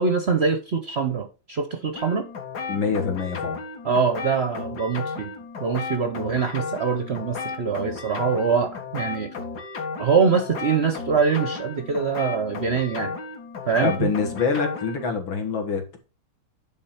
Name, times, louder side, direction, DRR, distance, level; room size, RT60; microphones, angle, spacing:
voice 1, 0.0-2.2 3.8-5.3 5.6-9.3 10.0-13.1 13.7-14.1, right 5 dB, 60° right, 7 dB, 0.6 m, -24 dB
sound 1, 1.9-15.1, left 4 dB, 55° left, 1.9 m, -34 dB
voice 2, 2.7-3.6 13.8-16.0, left 5 dB, 75° left, 3 dB, 2.3 m, -25 dB
9.7 x 3.8 x 5.7 m, 0.33 s
omnidirectional pair, 2.2 m